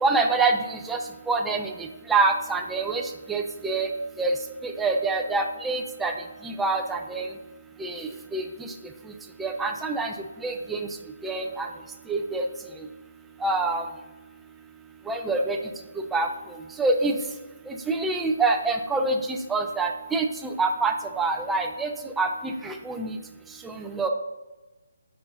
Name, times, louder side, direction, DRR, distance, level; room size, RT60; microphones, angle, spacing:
voice 1, 0.0-1.0 1.3-3.0 3.3-3.9 4.2-4.3 4.6-6.1 6.4-7.3 7.8-8.7 9.4-10.1 10.4-10.9 11.2-11.7 12.1-12.5 13.4-13.8 15.1-15.6 16.1-16.3 16.8-17.2 17.7-21.9 22.2-23.2 23.6-24.1, right 3 dB, 5° right, 3 dB, 0.4 m, -26 dB
8.2 x 5.5 x 3.8 m, 1.1 s
hypercardioid pair, 175°, 0 cm